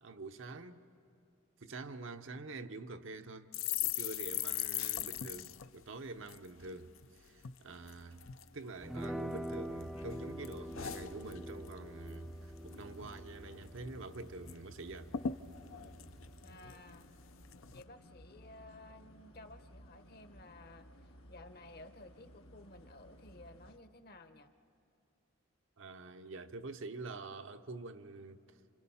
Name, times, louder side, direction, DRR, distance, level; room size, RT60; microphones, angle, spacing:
voice 1, 0.0-0.8 1.6-3.5 3.8-8.3 8.5-15.1 25.8-28.4, right 3 dB, 65° right, 0.8 m, -46 dB
sound 1, 3.5-7.1 7.4-7.6 7.9-8.5 9.0-9.8 10.1-11.8 12.1-12.3 12.6-13.2 13.5-13.6 13.9-14.6 14.8-14.9 15.1-17.0 17.5-17.8, left 10 dB, 70° left, 0.6 m, -40 dB
sound 2, 8.8-16.6, equal, ahead, 0.5 m, -46 dB
sound 3, 9.6-23.8, equal, 85° left, 1.3 m, -58 dB
voice 2, 16.4-17.1 17.7-20.9 21.3-24.5, left 2 dB, 45° left, 0.9 m, -55 dB
29.5 x 27.0 x 5.6 m
head